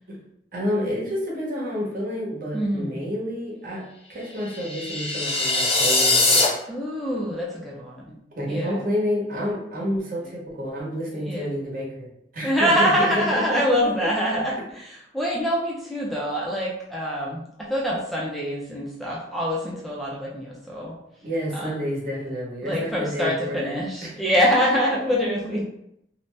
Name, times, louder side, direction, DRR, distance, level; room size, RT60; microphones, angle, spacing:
voice 1, 0.5-3.8 4.1-6.5 8.3-12.1 12.3-14.4 21.2-24.1 25.5-25.6, equal, 55° right, -4 dB, 0.9 m, -29 dB
voice 2, 2.5-3.0 6.7-8.2 8.5-8.8 11.2-11.5 12.4-20.9 21.5-21.7 22.6-25.6, equal, ahead, -5 dB, 0.4 m, -25 dB
sound 1, 4.4-6.4, left 2 dB, 35° left, 0.7 m, -21 dB
2.6 x 2.0 x 3.2 m, 0.77 s
head